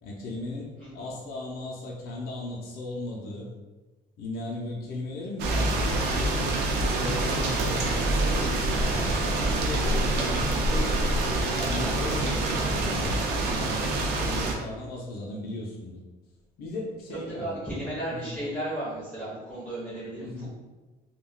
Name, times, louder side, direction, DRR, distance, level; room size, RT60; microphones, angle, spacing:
voice 1, 0.0-3.5 4.2-13.7 14.2-16.0 16.6-17.6 18.1-18.4 20.2-20.5, left 2 dB, 65° left, -3 dB, 0.6 m, -37 dB
sound 1, 5.4-14.5, right 2 dB, 80° right, 0.5 m, -26 dB
voice 2, 17.4-20.5, right 1 dB, 5° left, -11 dB, 1.0 m, -34 dB
3.5 x 2.3 x 2.2 m, 1.2 s
cardioid pair, 110°, 17 cm